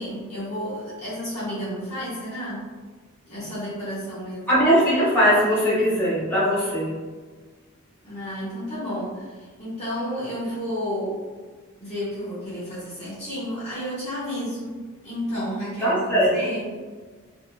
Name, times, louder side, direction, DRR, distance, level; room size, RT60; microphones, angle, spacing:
voice 1, 0.0-2.6 3.3-4.5 8.0-11.2 11.8-14.8 15.0-16.7, equal, 35° left, -11 dB, 1.0 m, -31 dB
voice 2, 4.5-6.9 15.8-16.4, equal, 10° left, -10 dB, 1.1 m, -20 dB
2.7 x 2.6 x 2.3 m, 1.4 s
head